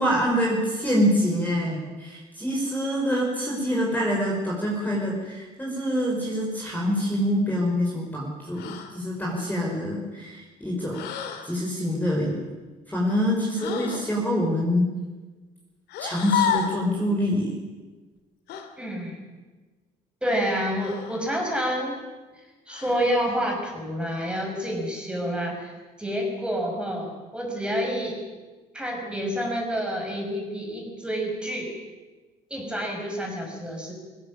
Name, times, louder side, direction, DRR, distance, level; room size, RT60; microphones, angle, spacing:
voice 1, 0.0-11.1 11.4-12.4 12.9-14.9 16.0-17.6, equal, 10° left, -3 dB, 5.6 m, -25 dB
sound 1, 8.6-9.0 10.9-11.5 13.6-14.1 15.9-16.8 18.5-18.7 20.8-21.3 22.7-23.2, left 8 dB, 80° left, 2.7 m, -30 dB
voice 2, 18.8-19.2 20.2-22.0 22.3-25.7 26.0-28.2 28.7-31.7 32.5-33.9, equal, 5° right, 0 dB, 6.6 m, -28 dB
20.0 x 17.0 x 8.9 m, 1.3 s
cardioid pair, 110°, 17 cm